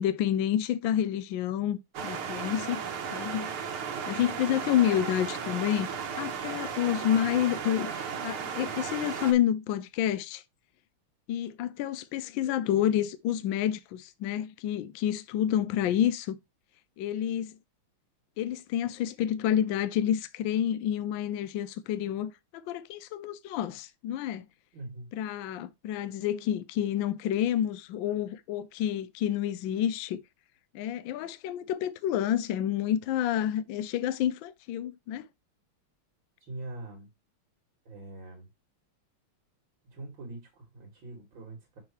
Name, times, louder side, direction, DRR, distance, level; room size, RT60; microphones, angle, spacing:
voice 1, 0.0-2.8 3.1-3.6 4.1-5.9 6.2-10.4 11.3-16.4 17.0-17.5 18.4-24.5 25.1-30.2 30.7-35.3, left 10 dB, 75° left, 1.2 m, -29 dB
sound 1, 1.9-9.3, right 7 dB, 80° right, 2.0 m, -35 dB
voice 2, 24.7-25.1 36.4-37.1 37.9-38.5 39.8-41.8, right 2 dB, 60° right, 2.9 m, -43 dB
6.9 x 5.9 x 3.0 m
omnidirectional pair, 2.4 m